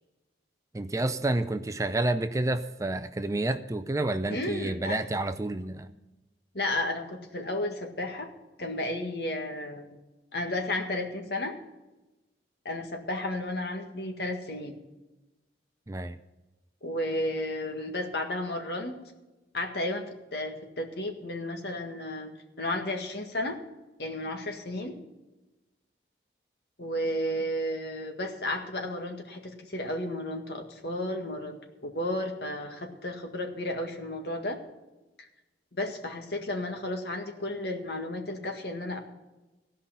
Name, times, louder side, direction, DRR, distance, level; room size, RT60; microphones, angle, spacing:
voice 1, 0.7-5.9 15.9-16.2, right 2 dB, 20° right, 10 dB, 0.4 m, -29 dB
voice 2, 4.3-5.0 6.5-8.3 8.6-10.0 10.3-11.5 12.7-14.7 16.8-18.9 19.5-20.0 20.3-22.3 22.6-23.6 24.0-24.9 26.8-29.4 29.7-31.6 31.8-34.6 35.7-39.0, left 1 dB, 60° left, 4 dB, 1.8 m, -33 dB
16.0 x 5.7 x 8.9 m, 1.0 s
head